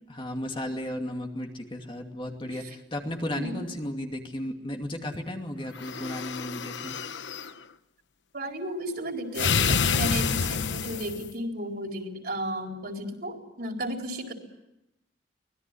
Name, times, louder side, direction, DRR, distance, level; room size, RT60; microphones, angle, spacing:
voice 1, 0.1-7.0, left 1 dB, 25° left, 3 dB, 2.5 m, -34 dB
sound 1, 5.8-7.5 9.3-11.3, left 6 dB, 75° left, 1.0 m, -28 dB
voice 2, 8.3-14.3, equal, 55° right, 2 dB, 4.3 m, -34 dB
24.5 x 21.0 x 9.9 m, 0.90 s
head